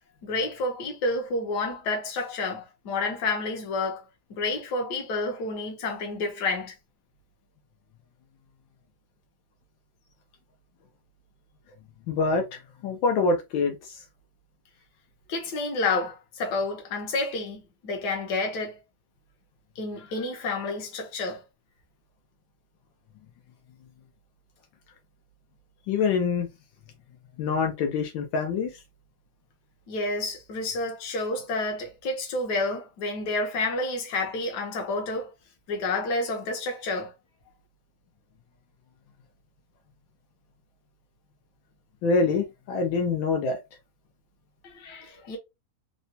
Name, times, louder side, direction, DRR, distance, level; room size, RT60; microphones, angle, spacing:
voice 1, 0.2-4.0 4.3-6.7 15.3-18.8 19.8-21.4 29.9-35.3 35.7-37.1 44.6-45.4, left 2 dB, 65° left, 1.4 m, -29 dB
voice 2, 12.1-14.0 25.9-26.5 27.4-28.7 42.0-43.6, left 4 dB, 80° left, 1.4 m, -25 dB
3.9 x 2.2 x 2.6 m
omnidirectional pair, 2.1 m